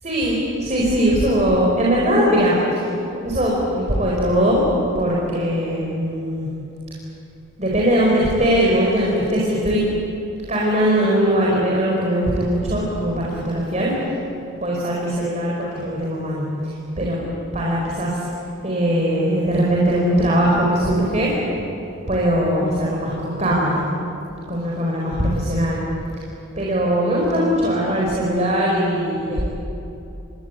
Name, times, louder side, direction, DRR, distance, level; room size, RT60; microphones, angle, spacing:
voice 1, 0.0-2.8 3.2-4.6 4.9-6.5 7.6-9.8 10.5-13.9 14.6-17.2 17.5-18.1 18.6-21.3 22.1-23.8 24.5-25.8 26.6-29.5, equal, 30° right, -4 dB, 5.1 m, -20 dB
29.5 x 22.5 x 8.4 m, 2.8 s
head